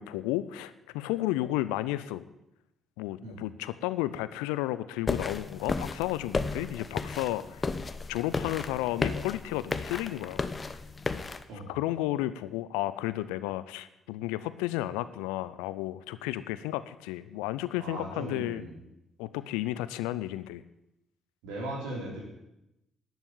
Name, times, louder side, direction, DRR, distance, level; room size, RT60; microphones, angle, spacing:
voice 1, 0.0-2.2 3.0-7.6 8.1-10.4 11.5-18.6 19.2-20.6, left 15 dB, 75° left, 15 dB, 0.5 m, -32 dB
sound 1, 5.1-11.4, left 3 dB, 30° left, 0.9 m, -33 dB
voice 2, 17.8-18.8 21.4-22.2, right 1 dB, 70° right, 0 dB, 3.5 m, -38 dB
11.5 x 8.0 x 8.7 m, 0.91 s
figure-of-eight pair, 45°, 0 cm